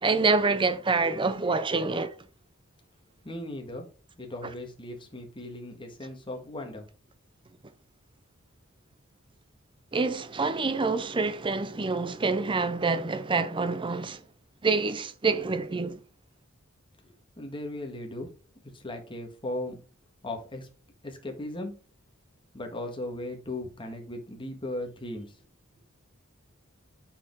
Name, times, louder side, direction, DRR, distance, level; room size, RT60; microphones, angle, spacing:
voice 1, 0.0-2.1 9.9-14.2 14.6-16.0, right 4 dB, 25° right, 0.6 m, -26 dB
voice 2, 3.2-3.9 4.2-6.8 17.4-18.3 18.7-19.8 20.2-20.7 21.0-21.7 22.5-25.3, left 1 dB, 25° left, 1.6 m, -37 dB
5.9 x 4.9 x 4.4 m
head